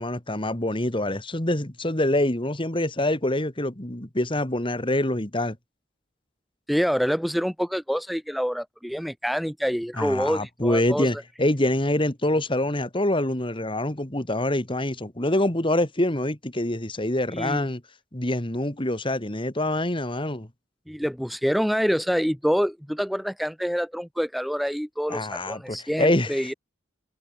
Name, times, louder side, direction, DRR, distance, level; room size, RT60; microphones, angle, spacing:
voice 1, 0.0-5.6 10.0-17.8 18.1-20.5 25.1-26.5, left 1 dB, 25° left, 2.2 m, -25 dB
voice 2, 6.7-11.1 17.3-17.7 20.9-26.5, equal, ahead, 1.2 m, -26 dB
head